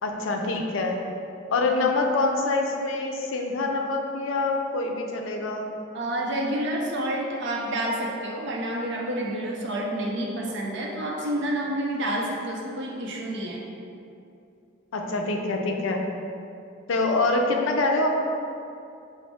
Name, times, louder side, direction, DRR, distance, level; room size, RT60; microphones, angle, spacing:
voice 1, 0.0-1.0 1.5-5.7 14.9-16.0 16.9-18.1, left 2 dB, 75° left, 2 dB, 0.4 m, -25 dB
voice 2, 5.9-13.6, right 1 dB, 65° right, -2 dB, 0.6 m, -29 dB
5.0 x 2.0 x 3.4 m, 2.6 s
head